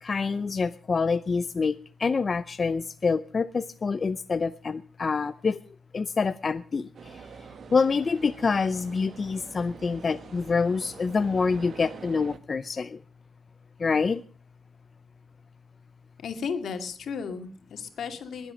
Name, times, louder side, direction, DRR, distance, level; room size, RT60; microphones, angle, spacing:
voice 1, 0.0-5.6 5.9-7.2 7.7-13.0 13.8-14.2, left 4 dB, 40° left, 12 dB, 0.6 m, -26 dB
sound 1, 6.9-12.4, right 5 dB, 65° right, 1.4 m, -46 dB
voice 2, 16.2-18.5, left 6 dB, 80° left, 7 dB, 2.2 m, -34 dB
21.0 x 8.0 x 6.4 m, 0.44 s
cardioid pair, 105°, 0 cm